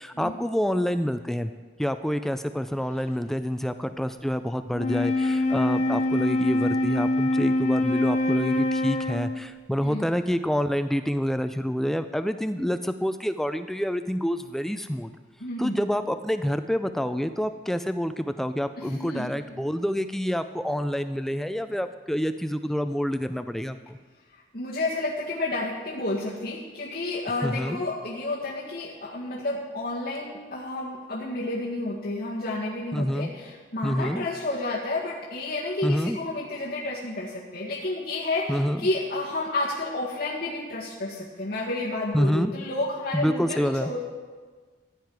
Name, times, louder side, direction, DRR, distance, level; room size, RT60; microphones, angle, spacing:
voice 1, 0.0-1.5 1.8-15.1 15.6-24.0 27.4-27.8 32.9-33.3 33.8-34.3 35.8-36.2 38.5-38.8 42.1-42.5 43.1-43.9, equal, ahead, 9 dB, 0.3 m, -27 dB
Wind instrument woodwind instrument, 4.7-9.5, left 1 dB, 45° left, 1.0 m, -24 dB
voice 2, 15.4-15.8 18.8-19.3 24.5-44.0, left 2 dB, 60° left, -7 dB, 1.8 m, -31 dB
15.0 x 9.3 x 4.7 m, 1.5 s
head